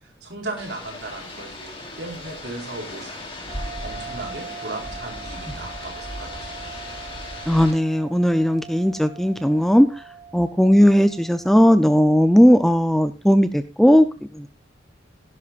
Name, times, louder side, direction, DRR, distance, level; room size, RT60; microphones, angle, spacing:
voice 1, 0.0-3.1 3.8-6.7, right 2 dB, 60° right, 1 dB, 4.3 m, -36 dB
sound 1, 0.6-7.7, left 1 dB, 30° left, 3.8 m, -36 dB
sound 2, 3.5-12.5, right 6 dB, 30° right, 2.6 m, -42 dB
voice 2, 7.5-10.0 10.3-14.1 14.3-14.5, equal, ahead, 10 dB, 0.5 m, -17 dB
17.5 x 11.0 x 2.5 m, 0.29 s
head